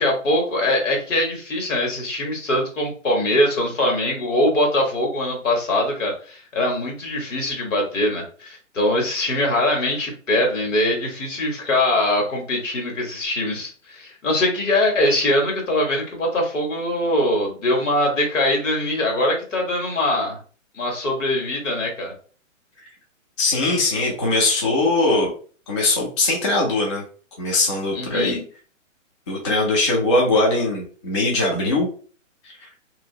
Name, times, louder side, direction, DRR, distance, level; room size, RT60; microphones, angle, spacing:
voice 1, 0.0-20.4 20.7-22.1 27.9-28.4, left 1 dB, 70° left, 1 dB, 1.6 m, -22 dB
voice 2, 23.4-25.3 25.7-27.0 27.4-28.4 29.3-31.9 32.4-32.7, left 2 dB, 25° left, -2 dB, 0.4 m, -21 dB
2.8 x 2.8 x 2.7 m, 0.41 s
hypercardioid pair, 140°, 40 cm